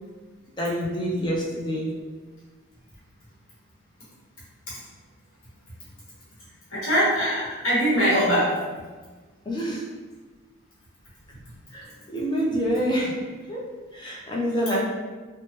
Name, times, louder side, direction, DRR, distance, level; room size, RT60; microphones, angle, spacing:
voice 1, 0.6-1.9 9.5-9.8 11.7-13.1 13.5-13.6 13.9-14.8, equal, 20° left, -4 dB, 0.5 m, -27 dB
voice 2, 6.7-8.6, equal, 85° left, -8 dB, 1.0 m, -22 dB
2.8 x 2.1 x 3.1 m, 1.3 s
head